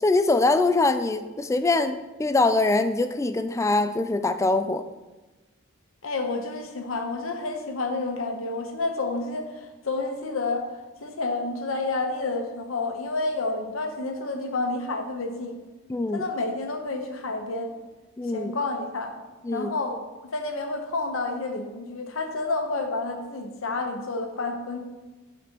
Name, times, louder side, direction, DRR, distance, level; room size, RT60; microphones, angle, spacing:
voice 1, 0.0-4.8 15.9-16.2 18.2-18.5 19.4-19.7, left 2 dB, 15° left, 9 dB, 0.3 m, -23 dB
voice 2, 6.0-9.5 9.8-10.7 11.0-15.6 16.1-17.7 18.3-19.1 19.5-20.0 20.3-24.8, left 3 dB, 90° left, 4 dB, 1.0 m, -29 dB
11.5 x 4.2 x 3.0 m, 1.2 s
head